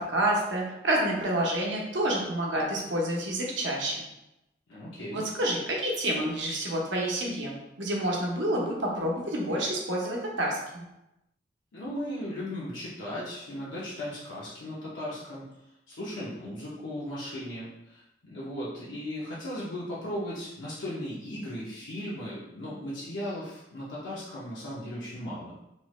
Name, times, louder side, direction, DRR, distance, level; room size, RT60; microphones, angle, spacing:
voice 1, 0.0-4.0 5.1-10.8, right 1 dB, 80° right, -2 dB, 0.8 m, -28 dB
voice 2, 4.7-5.2 11.7-15.4 15.9-25.5, left 1 dB, 85° left, -8 dB, 0.6 m, -37 dB
3.1 x 2.1 x 3.1 m, 0.90 s
head